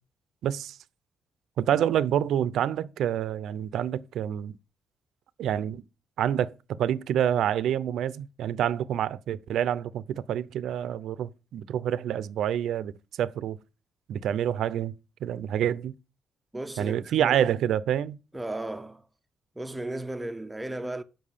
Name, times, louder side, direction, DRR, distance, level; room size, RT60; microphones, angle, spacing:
voice 1, 0.4-0.8 1.6-4.6 5.4-5.8 6.2-12.9 13.2-13.6 14.1-14.9 15.2-15.9 16.8-18.2, right 10 dB, 70° right, 0.6 m, -27 dB
voice 2, 16.5-17.5 18.3-19.1 19.6-21.0, right 1 dB, 10° right, 0.7 m, -35 dB
7.4 x 5.8 x 6.8 m
cardioid pair, 160°, 0 cm